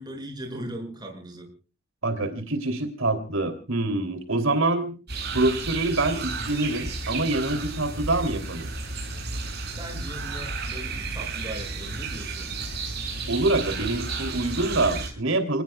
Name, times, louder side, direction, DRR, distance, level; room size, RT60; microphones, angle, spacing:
voice 1, 0.0-1.5 9.8-12.5, right 1 dB, 20° right, 3 dB, 6.1 m, -38 dB
voice 2, 2.0-4.9 5.3-8.7 13.3-15.6, right 2 dB, 80° right, 7 dB, 3.0 m, -25 dB
sound 1, 5.1-15.1, right 3 dB, 55° right, 7.7 m, -33 dB
29.0 x 19.5 x 2.3 m, 0.36 s
head